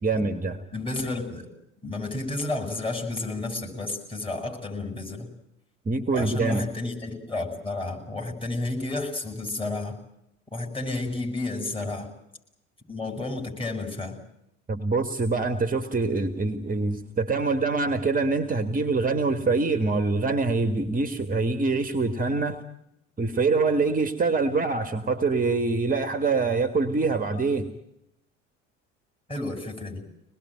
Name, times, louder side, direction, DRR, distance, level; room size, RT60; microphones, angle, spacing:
voice 1, 0.0-0.6 5.8-6.7 14.7-22.6 23.2-27.7, right 3 dB, 20° right, 9 dB, 1.7 m, -25 dB
voice 2, 0.7-1.5 1.8-5.3 6.1-10.0 10.5-12.1 12.9-14.2 29.3-30.0, left 2 dB, 15° left, 1 dB, 7.4 m, -31 dB
25.5 x 20.0 x 9.2 m, 0.82 s
figure-of-eight pair, 65°, 37 cm